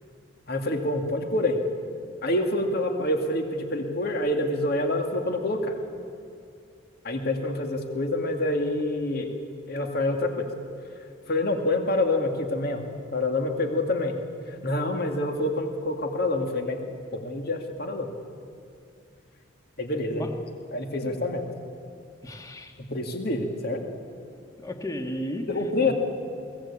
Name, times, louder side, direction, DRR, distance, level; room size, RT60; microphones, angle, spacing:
voice 1, 0.5-1.6 2.2-5.8 7.0-9.3 9.7-10.5 11.3-12.8 13.1-14.2 14.5-16.8 17.1-18.1 19.8-20.3 20.7-21.4 22.9-23.8 25.5-25.9, left 2 dB, 50° left, 4 dB, 2.2 m, -27 dB
voice 2, 22.2-22.7 24.6-25.5 25.8-25.9, equal, 15° left, 4 dB, 1.8 m, -34 dB
22.5 x 17.0 x 8.7 m, 2.4 s
head